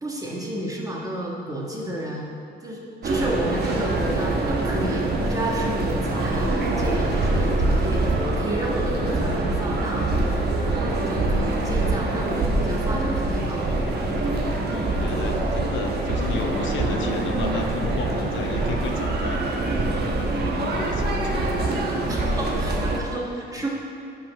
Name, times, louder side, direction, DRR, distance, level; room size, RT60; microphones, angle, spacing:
voice 1, 0.0-2.3 2.6-10.1 10.6-13.6 14.2-14.3 22.1-23.7, right 1 dB, 15° right, -2 dB, 1.5 m, -31 dB
sound 1, 3.0-23.0, right 2 dB, 55° right, 1.2 m, -24 dB
voice 2, 14.7-19.9 20.2-22.0 22.8-22.9 23.6-23.7, left 5 dB, 75° left, 4 dB, 0.7 m, -34 dB
5.6 x 5.2 x 6.3 m, 2.7 s
cardioid pair, 90°, 20 cm